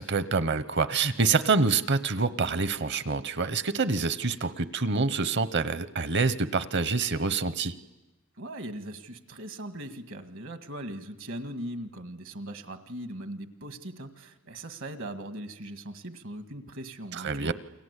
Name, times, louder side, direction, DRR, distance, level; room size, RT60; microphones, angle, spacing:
voice 1, 0.0-7.7 17.1-17.5, right 4 dB, 60° right, 13 dB, 0.9 m, -26 dB
voice 2, 8.4-17.5, right 1 dB, 75° right, 8 dB, 1.8 m, -39 dB
29.5 x 22.0 x 8.3 m, 1.1 s
head